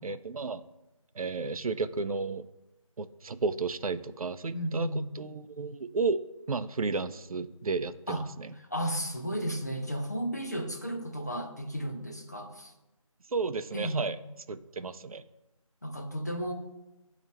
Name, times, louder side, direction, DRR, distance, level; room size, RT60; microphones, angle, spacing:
voice 1, 0.0-0.6 1.1-2.5 3.0-6.2 6.5-8.5 13.3-14.2 14.5-15.2, right 4 dB, 85° right, 12 dB, 0.5 m, -33 dB
voice 2, 4.5-5.0 8.1-8.2 8.7-12.7 13.7-14.0 15.8-16.5, equal, 30° left, 3 dB, 0.5 m, -33 dB
7.8 x 2.9 x 4.3 m, 0.99 s
figure-of-eight pair, 175°, 18 cm